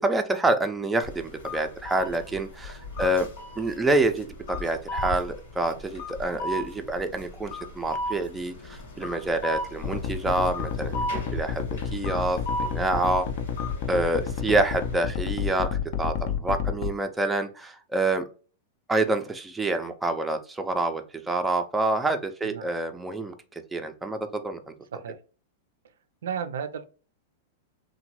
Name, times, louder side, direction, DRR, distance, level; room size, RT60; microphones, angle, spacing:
voice 1, 0.0-3.3 3.6-11.7 11.9-13.3 13.9-15.7 16.0-18.2 18.9-24.7, right 2 dB, 10° right, 0.4 m, -27 dB
sound 1, 1.0-14.9, left 1 dB, 80° left, 1.1 m, -36 dB
sound 2, 9.8-16.9, left 7 dB, 55° left, 0.4 m, -30 dB
voice 2, 26.2-26.9, right 7 dB, 80° right, 0.4 m, -34 dB
2.9 x 2.1 x 2.9 m
hypercardioid pair, 120°, 0 cm